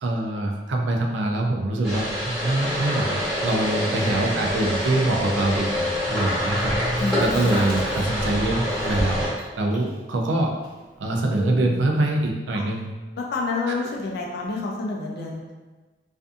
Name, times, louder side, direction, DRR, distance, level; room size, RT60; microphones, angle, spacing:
voice 1, 0.0-10.5 11.0-12.9, right 2 dB, 80° right, 1 dB, 0.4 m, -24 dB
sound 1, 1.8-9.3, equal, ahead, 1.0 m, -26 dB
voice 2, 3.8-4.7 7.0-7.5 12.5-12.7 13.2-15.5, left 3 dB, 60° left, -1 dB, 0.3 m, -30 dB
sound 2, 5.1-9.7, left 1 dB, 40° right, 0.7 m, -33 dB
Chewing mastication, 6.9-8.3 8.6-12.0, equal, 30° left, 0.9 m, -40 dB
2.5 x 2.5 x 2.3 m, 1.2 s
head